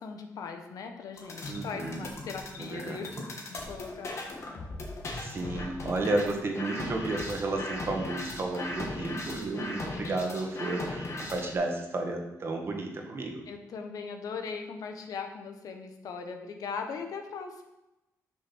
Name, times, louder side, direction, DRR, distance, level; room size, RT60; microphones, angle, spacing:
voice 1, 0.0-3.1 3.5-4.2 5.0-5.1 13.5-17.6, left 5 dB, 70° left, 5 dB, 1.2 m, -39 dB
sound 1, 1.2-11.5, left 2 dB, 45° left, 1.9 m, -38 dB
voice 2, 1.5-2.0 2.6-3.1 5.1-13.4, right 2 dB, 40° right, 2 dB, 1.7 m, -32 dB
6.9 x 6.6 x 6.2 m, 0.95 s
cardioid pair, 130°, 6 cm